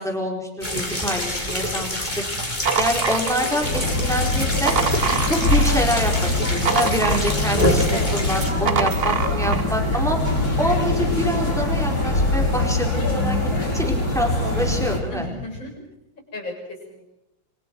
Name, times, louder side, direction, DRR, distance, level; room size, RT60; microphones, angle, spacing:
voice 1, 0.0-2.2 2.8-4.7 5.2-10.2 10.6-13.4 13.7-15.3, equal, ahead, 1 dB, 4.2 m, -26 dB
sound 1, 0.6-8.5, left 1 dB, 20° left, 4.4 m, -26 dB
sound 2, 2.3-3.8 4.3-5.8 6.1-7.7 8.3-9.7, right 6 dB, 55° right, 0.6 m, -25 dB
sound 3, 3.6-15.0, left 2 dB, 45° left, 6.6 m, -23 dB
voice 2, 15.1-15.7 16.3-17.1, left 1 dB, 60° left, 0 dB, 7.9 m, -34 dB
30.0 x 24.5 x 4.7 m, 0.86 s
omnidirectional pair, 2.4 m